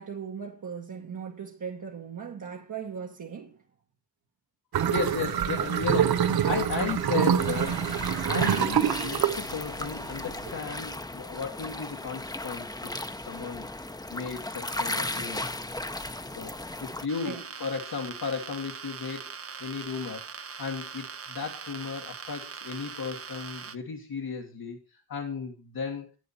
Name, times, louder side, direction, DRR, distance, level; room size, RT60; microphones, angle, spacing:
voice 1, 0.0-3.6 17.2-17.4, right 6 dB, 55° right, 1.3 m, -38 dB
sound 1, 4.7-10.5, right 9 dB, 85° right, 0.8 m, -26 dB
voice 2, 4.8-7.8 8.2-13.7 14.1-15.5 16.4-19.3 19.6-20.2 20.6-26.1, left 6 dB, 75° left, 1.6 m, -35 dB
sound 2, 7.4-17.1, left 2 dB, 10° left, 0.7 m, -36 dB
sound 3, 17.1-23.8, right 6 dB, 40° right, 0.7 m, -41 dB
11.0 x 8.7 x 4.2 m
cardioid pair, 70°, 36 cm